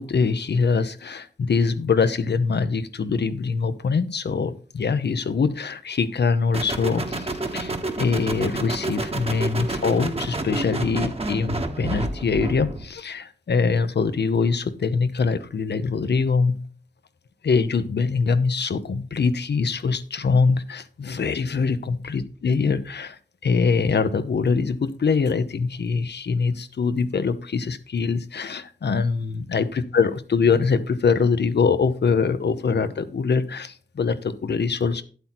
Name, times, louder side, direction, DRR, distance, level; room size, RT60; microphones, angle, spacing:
voice 1, 0.0-16.6 17.4-35.0, left 5 dB, 70° left, 12 dB, 0.8 m, -23 dB
sound 1, 6.5-12.9, right 2 dB, 35° right, 1.3 m, -29 dB
9.9 x 8.0 x 4.3 m, 0.41 s
wide cardioid pair, 70°, 18 cm